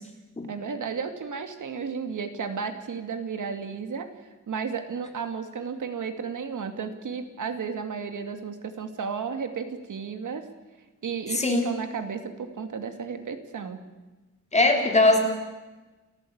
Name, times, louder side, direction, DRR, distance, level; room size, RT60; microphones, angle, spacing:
voice 1, 0.5-4.1 4.5-10.4 11.0-13.8, right 6 dB, 75° right, 7 dB, 2.4 m, -33 dB
voice 2, 11.3-11.6 14.5-15.2, left 2 dB, 20° left, 2 dB, 3.6 m, -20 dB
28.5 x 14.0 x 8.8 m, 1.2 s
wide cardioid pair, 160°, 31 cm